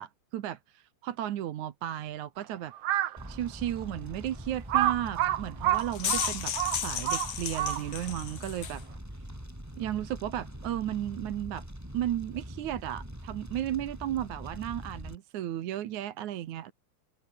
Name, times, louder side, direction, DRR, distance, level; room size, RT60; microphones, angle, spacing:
voice 1, 0.0-2.7 3.3-8.8 9.8-11.6 11.9-16.7, right 12 dB, 80° right, 2.6 m, -34 dB
Crow, 2.7-3.2 3.8-3.9 4.7-8.1, right 13 dB, 65° right, 1.8 m, -28 dB
Fire, 3.2-15.2, equal, 5° right, 4.5 m, -43 dB
sound 1, 5.7-8.8, left 9 dB, 85° left, 3.4 m, -34 dB
omnidirectional pair, 3.4 m